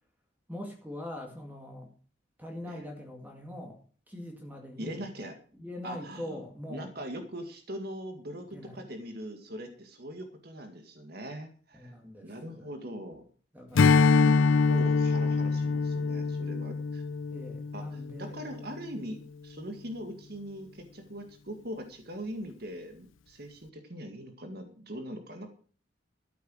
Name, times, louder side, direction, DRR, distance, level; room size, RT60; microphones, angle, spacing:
voice 1, 0.5-1.9 2.4-3.8 4.1-5.1 5.5-6.9 8.5-8.9 11.7-12.7 13.5-14.5 17.3-18.4, left 1 dB, 10° right, 2 dB, 2.0 m, -43 dB
voice 2, 4.8-5.3 5.8-6.4 6.7-11.9 12.2-13.3 14.1-14.3 14.7-17.0 17.7-25.5, equal, 50° right, 6 dB, 1.9 m, -41 dB
Strum, 13.8-18.5, left 4 dB, 80° left, 0.5 m, -25 dB
13.0 x 8.2 x 6.3 m, 0.41 s
head